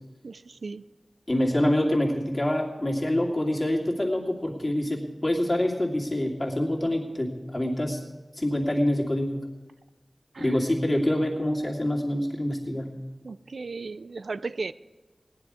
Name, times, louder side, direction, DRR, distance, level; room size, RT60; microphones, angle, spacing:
voice 1, 0.2-0.8 10.3-10.6 13.2-14.7, right 3 dB, 85° right, 0.4 m, -35 dB
voice 2, 1.3-8.0 8.3-9.4 10.4-12.9, left 1 dB, 30° left, 2.6 m, -26 dB
17.5 x 10.5 x 4.9 m
wide cardioid pair, 60°, 0 cm